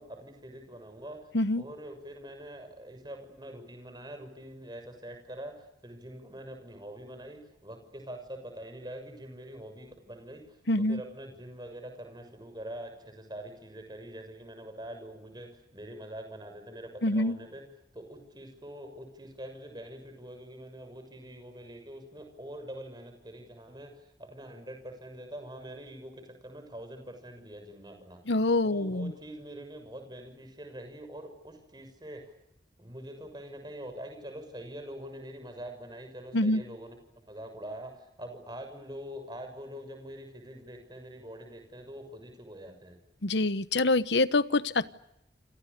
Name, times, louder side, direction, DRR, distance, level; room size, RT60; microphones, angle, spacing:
voice 1, 0.0-1.3 1.6-17.7 17.9-28.2 28.6-32.3 32.8-37.0 37.3-43.0, right 1 dB, 25° right, 5 dB, 6.6 m, -44 dB
voice 2, 10.7-11.0 17.0-17.4 28.3-29.1 36.3-36.6 43.2-44.9, left 2 dB, 85° left, 15 dB, 1.1 m, -25 dB
29.0 x 27.5 x 6.8 m, 0.80 s
head